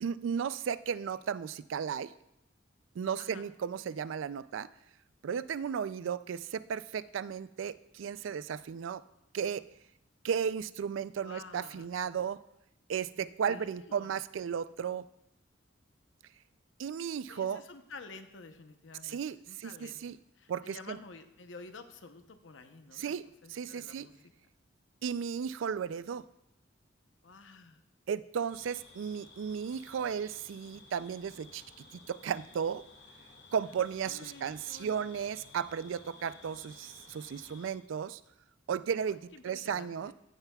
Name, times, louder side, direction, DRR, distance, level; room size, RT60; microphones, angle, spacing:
voice 1, 0.0-2.1 3.0-4.7 5.2-9.0 9.3-9.6 10.2-12.4 12.9-15.0 16.8-17.6 19.0-20.2 20.5-21.0 23.0-23.2 23.5-24.1 25.0-26.2 28.1-31.6 32.1-32.8 33.5-38.2 38.7-40.1, right 7 dB, 85° right, 16 dB, 0.3 m, -35 dB
voice 2, 3.2-3.5 11.2-11.9 13.1-14.2 17.3-19.2 19.5-20.0 20.4-23.1 23.4-24.1 27.2-27.8 34.0-35.0 39.0-40.1, left 3 dB, 80° left, 8 dB, 0.8 m, -50 dB
sound 1, 28.5-37.7, left 3 dB, 65° left, 2.0 m, -55 dB
14.5 x 9.1 x 2.3 m, 0.82 s
head